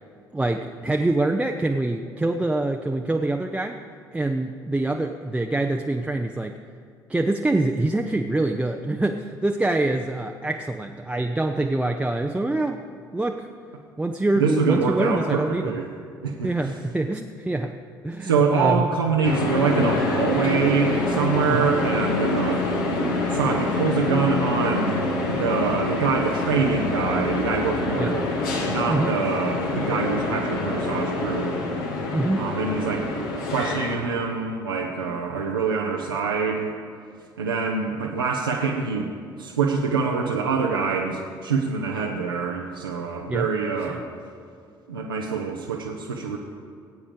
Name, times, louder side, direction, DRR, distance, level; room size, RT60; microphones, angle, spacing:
voice 1, 0.3-3.8 4.1-6.5 7.1-12.8 13.1-13.5 14.0-15.7 16.4-17.7 18.0-18.9 21.5-21.7 28.0-28.2 28.9-29.1 32.1-32.5 43.3-43.5, right 2 dB, 10° right, 3 dB, 0.6 m, -25 dB
voice 2, 14.3-15.9 16.2-16.5 18.2-22.6 23.3-25.0 25.3-28.3 28.7-31.6 32.4-33.1 33.5-36.7 37.4-39.1 39.4-44.0 44.9-46.4, right 5 dB, 80° right, -2 dB, 0.8 m, -25 dB
sound 1, 19.2-34.0, left 2 dB, 70° left, 1.6 m, -26 dB
18.0 x 8.5 x 5.1 m, 2.3 s
figure-of-eight pair, 50°, 12 cm